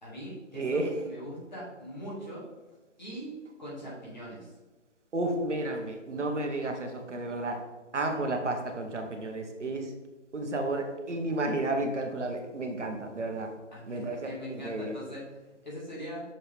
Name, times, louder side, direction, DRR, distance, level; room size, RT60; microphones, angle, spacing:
voice 1, 0.0-2.4 3.0-3.3 3.6-4.5 13.7-16.2, equal, 35° left, -6 dB, 2.1 m, -41 dB
voice 2, 0.5-1.0 5.1-7.6 7.9-9.9 10.3-13.5 13.9-15.0, right 2 dB, 65° right, 3 dB, 1.2 m, -32 dB
6.6 x 4.4 x 3.4 m, 1.2 s
hypercardioid pair, 180°, 38 cm